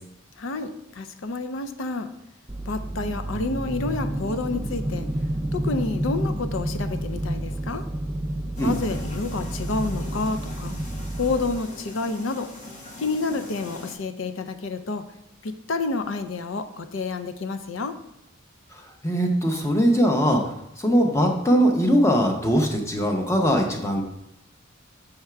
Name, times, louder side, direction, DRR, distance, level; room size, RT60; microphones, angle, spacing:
voice 1, 0.4-2.1 2.6-5.1 5.5-7.8 8.6-10.7 11.1-12.5 13.0-15.0 15.4-18.0, left 3 dB, 70° left, 9 dB, 0.5 m, -29 dB
sound 1, 2.5-11.6, right 1 dB, 10° right, 0.3 m, -30 dB
sound 2, 8.6-13.9, left 2 dB, 35° left, 1.0 m, -41 dB
voice 2, 19.0-24.0, equal, 15° left, 2 dB, 0.7 m, -21 dB
6.6 x 3.6 x 4.5 m, 0.81 s
head